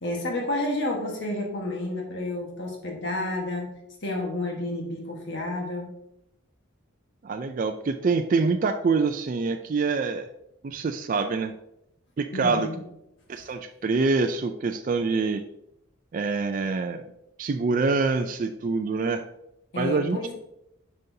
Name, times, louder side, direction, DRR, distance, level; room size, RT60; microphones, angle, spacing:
voice 1, 0.0-3.7 4.0-5.9 12.3-12.8 19.7-20.3, left 1 dB, 55° left, 0 dB, 1.4 m, -30 dB
voice 2, 7.2-10.3 10.6-11.5 12.2-12.7 13.3-15.4 16.1-17.0 17.4-19.2 19.8-20.2, right 4 dB, 40° right, 6 dB, 0.3 m, -25 dB
9.3 x 5.3 x 2.7 m, 0.82 s
head